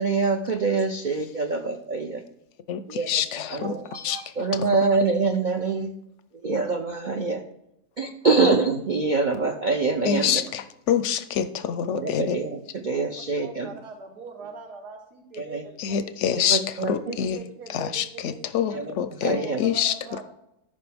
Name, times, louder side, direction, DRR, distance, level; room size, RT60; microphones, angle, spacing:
voice 1, 0.0-2.2 2.9-3.1 3.5-5.9 6.4-7.4 8.0-10.4 11.9-13.7 15.4-15.6 16.4-16.9 18.7-18.9 19.2-19.6, right 4 dB, 60° right, 5 dB, 0.4 m, -25 dB
voice 2, 3.1-4.7 10.0-12.4 15.8-17.4 17.7-20.2, left 9 dB, 65° left, 12 dB, 0.7 m, -26 dB
voice 3, 13.4-16.0 16.9-18.8 19.3-20.2, right 4 dB, 90° right, 2 dB, 1.7 m, -41 dB
13.5 x 5.6 x 3.5 m, 0.82 s
omnidirectional pair, 1.6 m